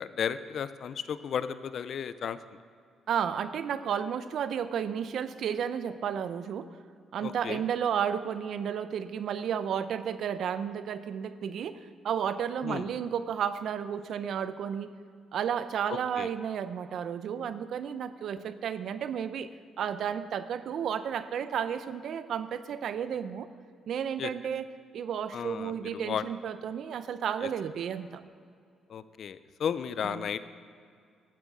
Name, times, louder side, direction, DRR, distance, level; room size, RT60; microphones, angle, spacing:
voice 1, 0.0-2.4 7.2-7.6 12.6-12.9 15.9-16.3 24.2-24.3 25.3-26.2 27.4-27.5 28.9-30.4, left 8 dB, 60° left, 14 dB, 0.5 m, -34 dB
voice 2, 3.1-6.8 7.1-14.9 15.3-19.5 19.8-23.5 23.9-28.2 30.0-30.3, right 8 dB, 70° right, 12 dB, 0.6 m, -32 dB
12.5 x 7.5 x 7.3 m, 2.3 s
cardioid pair, 90°, 0 cm